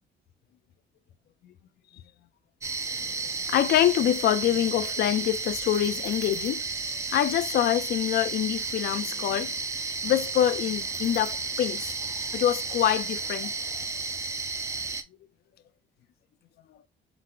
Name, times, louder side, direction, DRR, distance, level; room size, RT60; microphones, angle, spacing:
sound 1, 2.6-15.0, right 4 dB, 15° right, 0.4 m, -33 dB
voice 1, 3.0-6.6 7.1-9.6 10.0-11.9 12.3-13.5, left 12 dB, 55° left, 0.4 m, -25 dB
4.0 x 2.4 x 4.4 m
cardioid pair, 170°, 20 cm